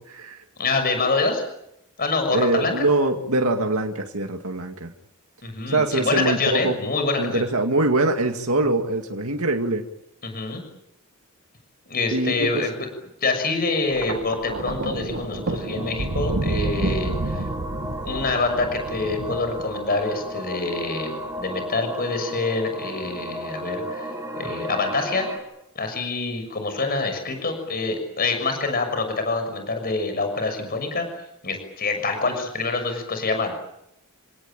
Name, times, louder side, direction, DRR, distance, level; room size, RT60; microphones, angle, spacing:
voice 1, 0.0-0.4 2.3-4.9 5.7-6.8 7.2-9.8 12.1-12.6, right 2 dB, 85° right, 3 dB, 2.2 m, -23 dB
voice 2, 0.6-1.4 2.0-2.9 5.4-7.4 10.2-10.6 11.9-12.7 13.2-17.4 18.0-21.1 21.4-25.3 25.7-31.1 31.4-33.5, left 3 dB, 45° left, 7 dB, 6.5 m, -26 dB
Thunder, 13.9-20.3 21.2-21.5, right 2 dB, 55° right, 1.0 m, -29 dB
sound 1, 14.7-25.4, equal, 15° right, 5.9 m, -34 dB
30.0 x 18.0 x 9.0 m, 0.79 s
head